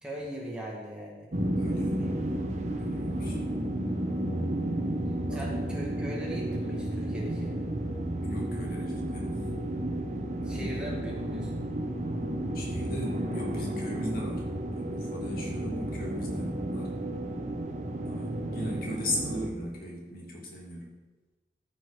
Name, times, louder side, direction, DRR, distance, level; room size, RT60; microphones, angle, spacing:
voice 1, 0.0-1.3 1.6-2.2 5.3-7.6 10.4-11.6, equal, 5° right, -4 dB, 2.1 m, -40 dB
sound 1, 1.3-19.5, right 1 dB, 40° right, 1.0 m, -32 dB
voice 2, 1.6-2.0 2.8-3.4 5.3-5.6 8.2-9.5 10.4-10.8 12.5-17.0 18.1-21.0, left 1 dB, 55° left, -2 dB, 2.4 m, -38 dB
14.0 x 6.2 x 5.1 m, 1.2 s
head